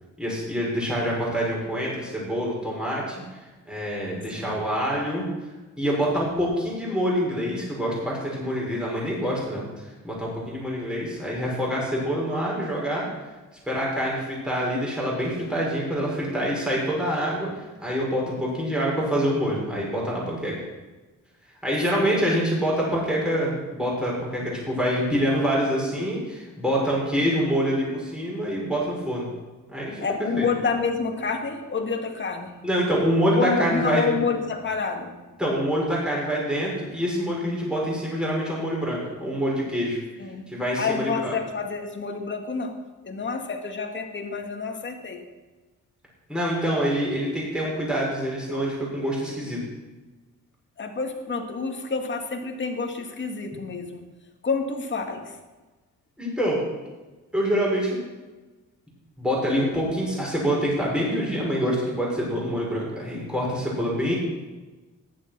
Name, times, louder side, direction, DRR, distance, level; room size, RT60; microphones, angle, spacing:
voice 1, 0.2-3.1 3.7-5.2 5.8-13.0 13.7-20.5 21.6-29.3 29.7-30.1 30.4-30.5 32.6-34.0 35.4-40.0 40.5-41.4 46.3-49.6 56.2-56.6 57.3-58.0 59.2-64.1, equal, 5° right, -5 dB, 6.3 m, -26 dB
voice 2, 7.1-7.5 21.9-22.3 30.0-32.6 33.4-35.2 40.2-42.8 43.0-45.3 50.8-54.1 54.4-55.4, left 4 dB, 35° left, 4 dB, 2.3 m, -29 dB
15.0 x 11.5 x 6.2 m, 1.2 s
cardioid pair, 110°, 31 cm